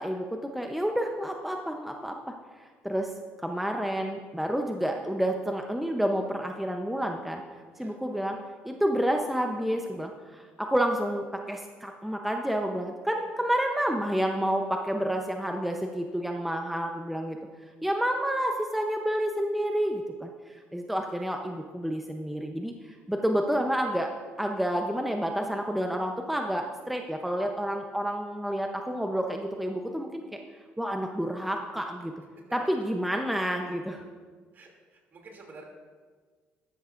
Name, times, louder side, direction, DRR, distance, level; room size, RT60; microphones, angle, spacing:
voice 1, 0.0-2.2 2.8-3.1 3.4-7.4 7.8-8.4 8.6-17.4 17.8-22.7 23.1-24.1 24.4-30.2 30.8-32.1 32.5-34.0, equal, ahead, 3 dB, 0.7 m, -29 dB
voice 2, 34.5-35.6, right 3 dB, 50° right, 0 dB, 2.8 m, -50 dB
12.5 x 12.5 x 2.6 m, 1.5 s
cardioid pair, 95°, 4 cm